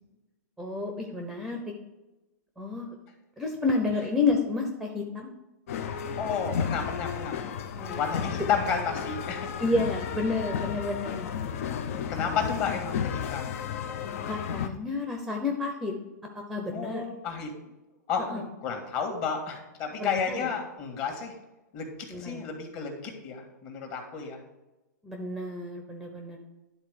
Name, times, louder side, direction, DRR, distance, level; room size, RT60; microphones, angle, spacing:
voice 1, 0.6-1.6 2.6-2.9 3.4-5.3 7.8-8.0 9.6-11.3 14.3-15.9 16.3-17.0 18.3-18.4 20.0-20.5 22.1-22.5 25.0-26.4, left 3 dB, ahead, 3 dB, 0.7 m, -30 dB
sound 1, 5.7-14.7, left 7 dB, 55° left, 0.7 m, -33 dB
voice 2, 6.2-7.5 8.0-9.5 11.7-11.8 12.1-13.5 16.7-17.5 18.1-21.4 21.7-24.4, left 6 dB, 35° left, 3 dB, 1.7 m, -32 dB
10.5 x 4.0 x 5.0 m, 1.0 s
hypercardioid pair, 155°, 9 cm